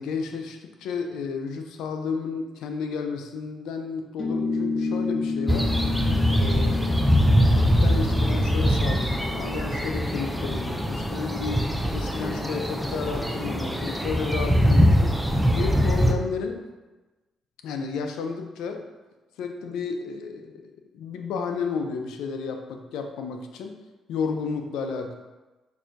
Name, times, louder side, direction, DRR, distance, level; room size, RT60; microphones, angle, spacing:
voice 1, 0.0-5.7 6.4-7.1 7.5-15.2 15.5-16.6 17.6-18.9 19.4-20.6 20.9-23.7 24.1-25.1, left 5 dB, 80° left, 5 dB, 0.4 m, -32 dB
sound 1, 4.2-11.1, left 4 dB, 25° left, 0.8 m, -31 dB
sound 2, 5.5-16.1, equal, ahead, 0.5 m, -22 dB
5.9 x 2.6 x 2.5 m, 1.2 s
hypercardioid pair, 50°, 0 cm